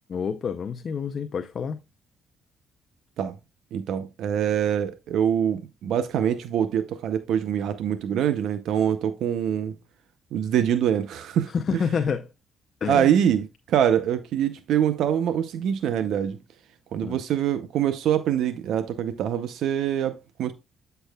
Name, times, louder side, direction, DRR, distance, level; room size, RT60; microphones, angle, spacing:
voice 1, 0.1-1.8 11.5-12.3 12.8-13.1 17.0-17.2, left 6 dB, 50° left, 0.6 m, -28 dB
voice 2, 3.7-9.8 10.3-11.5 12.8-16.4 16.9-20.5, right 9 dB, 80° right, 0.6 m, -24 dB
8.9 x 6.8 x 2.3 m
cardioid pair, 90°, 0 cm